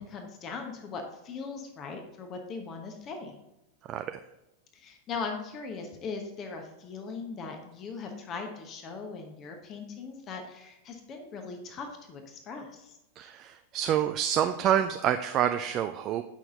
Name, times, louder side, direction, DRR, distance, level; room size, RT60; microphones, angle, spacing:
voice 1, 0.0-3.4 4.7-13.0, left 4 dB, 30° left, 4 dB, 1.1 m, -39 dB
voice 2, 13.2-16.2, right 10 dB, 35° right, 8 dB, 0.4 m, -27 dB
8.9 x 5.7 x 3.9 m, 0.91 s
figure-of-eight pair, 90°, 0 cm